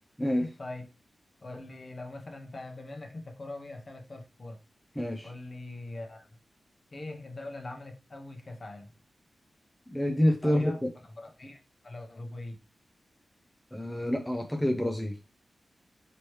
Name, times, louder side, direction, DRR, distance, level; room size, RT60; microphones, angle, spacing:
voice 1, 0.4-0.8 1.4-4.6 5.2-6.3 6.9-8.9 10.4-10.8 11.2-11.6 11.8-12.6, left 2 dB, 40° left, 4 dB, 0.8 m, -42 dB
voice 2, 5.0-5.3 9.9-10.7 13.7-15.1, left 1 dB, 5° left, 3 dB, 0.4 m, -27 dB
4.5 x 3.0 x 3.1 m, 0.31 s
wide cardioid pair, 115°, 0 cm